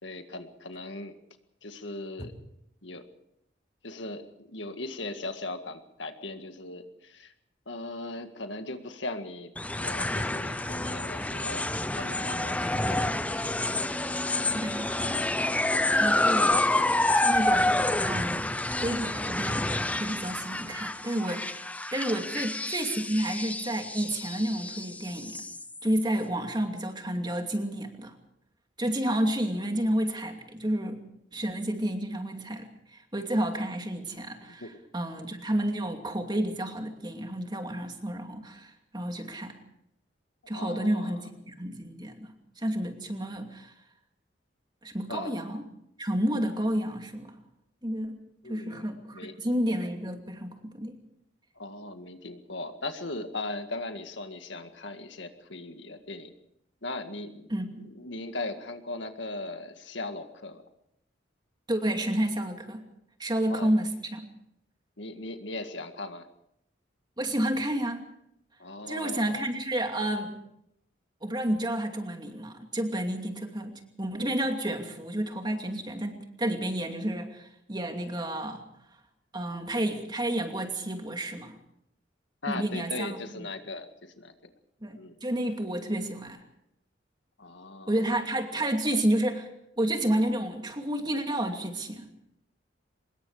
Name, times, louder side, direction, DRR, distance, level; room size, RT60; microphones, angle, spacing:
voice 1, 0.0-1.2 1.6-2.3 2.8-3.1 3.8-7.3 7.7-9.5 9.8-13.1 22.2-22.4 34.5-34.8 40.5-41.3 45.1-45.3 48.4-49.3 51.6-56.3 56.8-57.5 57.8-60.6 63.5-63.7 65.0-66.3 68.6-69.4 82.4-84.3 85.0-85.2 87.4-88.2, left 2 dB, 70° left, 7 dB, 1.9 m, -39 dB
sound 1, 9.6-26.0, left 2 dB, 10° left, 0.7 m, -28 dB
voice 2, 14.5-14.9 16.0-16.6 17.1-19.7 20.0-21.7 21.9-25.4 25.8-28.2 28.8-31.0 31.3-34.6 34.9-39.6 40.5-43.7 44.8-45.6 46.0-47.4 47.8-48.2 48.4-51.0 57.5-57.9 61.7-62.8 63.2-64.3 67.2-68.0 68.9-70.4 71.2-78.6 79.3-81.5 82.5-83.2 84.8-86.4 87.9-89.5 89.8-92.1, right 1 dB, 25° right, 4 dB, 2.6 m, -30 dB
24.5 x 21.0 x 5.0 m, 0.76 s
head